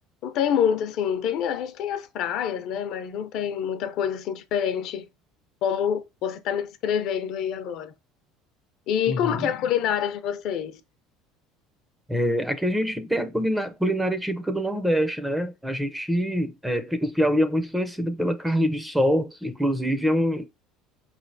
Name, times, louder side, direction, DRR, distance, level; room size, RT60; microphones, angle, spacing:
voice 1, 0.2-5.1 5.6-7.9 8.9-10.8, left 8 dB, 55° left, 0.6 m, -26 dB
voice 2, 9.1-9.5 12.1-20.5, equal, 5° right, 0.5 m, -25 dB
5.0 x 3.2 x 2.6 m
cardioid pair, 145°, 0 cm